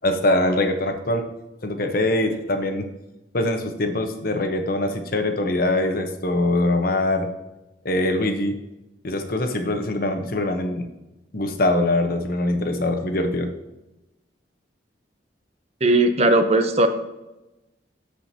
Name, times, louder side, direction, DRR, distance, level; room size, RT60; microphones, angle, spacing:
voice 1, 0.0-1.2 1.6-2.9 3.3-7.3 7.8-8.6 9.0-10.9 11.3-13.5, left 1 dB, 55° left, 5 dB, 1.0 m, -23 dB
voice 2, 15.8-16.9, right 2 dB, 35° right, 7 dB, 0.7 m, -17 dB
13.0 x 5.0 x 2.8 m, 0.98 s
head